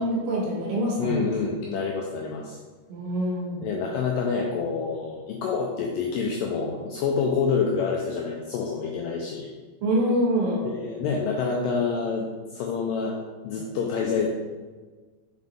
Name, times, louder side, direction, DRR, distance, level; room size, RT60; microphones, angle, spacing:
voice 1, 0.0-1.2 2.9-3.7 9.8-10.7 13.5-13.7, equal, 65° right, -4 dB, 3.0 m, -25 dB
voice 2, 1.0-2.6 3.6-9.5 10.6-14.3, left 5 dB, 85° left, 0 dB, 2.0 m, -27 dB
6.0 x 5.5 x 3.6 m, 1.4 s
omnidirectional pair, 4.5 m